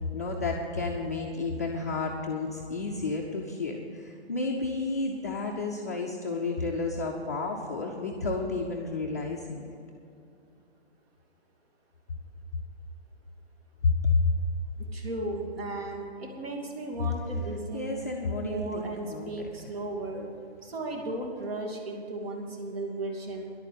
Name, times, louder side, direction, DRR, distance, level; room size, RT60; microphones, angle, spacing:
voice 1, 0.1-9.6 13.8-14.3 17.7-19.5, left 3 dB, 15° left, -3 dB, 0.5 m, -31 dB
voice 2, 14.9-18.0 18.4-20.3 20.6-23.5, right 2 dB, 60° right, 1 dB, 2.9 m, -35 dB
11.0 x 9.0 x 8.5 m, 2.6 s
hypercardioid pair, 170°, 34 cm